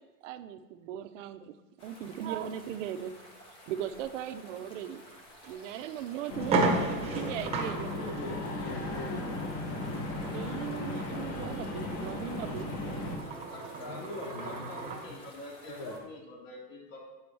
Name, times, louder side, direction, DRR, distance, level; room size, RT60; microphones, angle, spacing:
voice 1, 0.0-3.1 3.7-5.0 5.4-6.7 7.0-7.9 10.3-12.7, right 10 dB, 50° right, 10 dB, 0.6 m, -38 dB
sound 1, 1.8-16.0, equal, 10° left, 0.4 m, -53 dB
sound 2, 5.4-5.6 6.0-6.1 6.4-15.1, right 3 dB, 15° right, 0.9 m, -35 dB
sound 3, 6.3-13.2, left 2 dB, 30° left, 1.2 m, -36 dB
voice 2, 7.8-9.5 13.9-14.9 15.7-15.9, left 3 dB, 80° left, 0 dB, 1.4 m, -42 dB
voice 3, 13.1-17.0, left 1 dB, 50° left, -1 dB, 2.5 m, -46 dB
8.8 x 6.9 x 3.3 m, 1.1 s
supercardioid pair, 155°, 47 cm